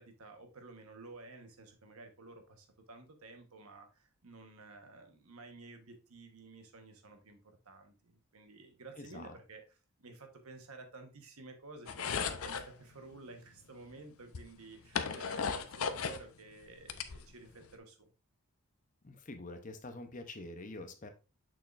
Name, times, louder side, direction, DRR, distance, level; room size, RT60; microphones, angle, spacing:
voice 1, 0.0-7.4 7.6-9.6 10.0-18.1, right 3 dB, 80° right, 6 dB, 1.3 m, -52 dB
voice 2, 9.0-9.3 19.0-21.1, left 2 dB, 35° left, 7 dB, 0.8 m, -46 dB
sound 1, 11.9-12.7 13.8-13.9 14.3-16.2 16.6-17.7, left 6 dB, 75° left, 0.7 m, -36 dB
6.7 x 6.4 x 2.5 m, 0.31 s
head